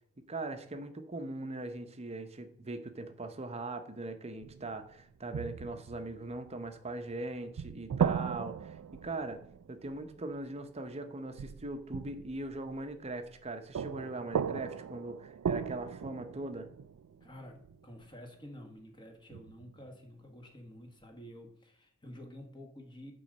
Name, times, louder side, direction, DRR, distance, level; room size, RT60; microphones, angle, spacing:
voice 1, 0.3-8.8 9.0-9.4 9.7-16.7, right 2 dB, 30° right, 8 dB, 0.8 m, -40 dB
sound 1, 4.4-4.9 5.3-7.1 7.6-10.6 11.4-13.5 13.7-18.1 19.3-19.9, right 7 dB, 85° right, 0.3 m, -37 dB
voice 2, 17.2-23.1, left 1 dB, 20° left, 3 dB, 1.4 m, -50 dB
8.3 x 3.9 x 6.4 m, 0.64 s
head